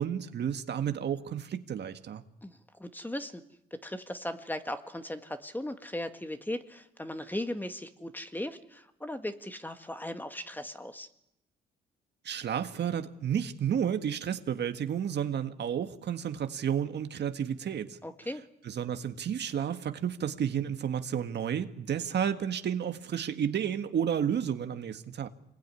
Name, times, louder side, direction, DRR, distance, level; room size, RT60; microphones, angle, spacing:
voice 1, 0.0-2.2 12.2-18.0 18.6-25.3, right 8 dB, 60° right, 1.7 m, -31 dB
voice 2, 2.4-3.4 3.7-11.1 18.0-18.4, left 1 dB, 10° left, 1.7 m, -38 dB
26.5 x 21.5 x 9.8 m
cardioid pair, 90°, 20 cm